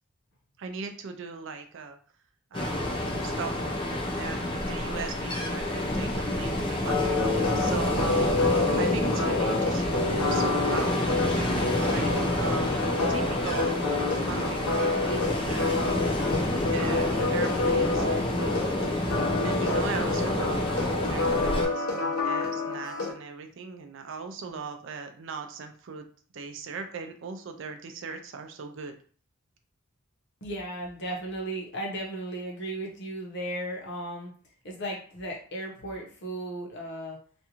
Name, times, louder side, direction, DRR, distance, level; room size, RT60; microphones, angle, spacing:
voice 1, 0.6-2.0 2.5-8.3 8.7-11.0 11.3-12.7 13.1-15.9 16.5-18.4 19.4-20.7 21.0-26.1 26.3-28.9, right 5 dB, 60° right, 6 dB, 0.4 m, -39 dB
Ocean, 2.5-21.7, left 1 dB, 25° left, 0.4 m, -28 dB
sound 1, 6.8-23.1, left 3 dB, 85° left, 0.7 m, -29 dB
voice 2, 30.4-34.3 34.6-37.2, right 1 dB, 55° left, -1 dB, 0.8 m, -35 dB
2.6 x 2.3 x 2.8 m, 0.44 s
head